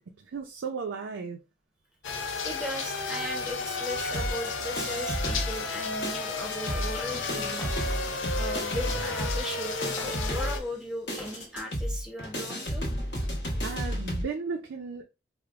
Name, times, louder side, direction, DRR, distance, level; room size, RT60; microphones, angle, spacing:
voice 1, 0.0-1.4 8.0-8.2 13.6-15.0, right 5 dB, 90° right, 0.5 m, -35 dB
sound 1, 2.0-10.6, left 3 dB, 85° left, 0.6 m, -33 dB
voice 2, 2.4-7.7 8.3-12.9, equal, 5° right, 0.7 m, -37 dB
sound 2, 4.1-5.8 6.0-14.2, equal, 65° left, 1.0 m, -32 dB
sound 3, 7.6-8.0 8.8-9.1 10.0-10.3 11.2-11.5 12.3-12.4, left 1 dB, 15° left, 1.1 m, -45 dB
4.8 x 2.0 x 2.4 m
head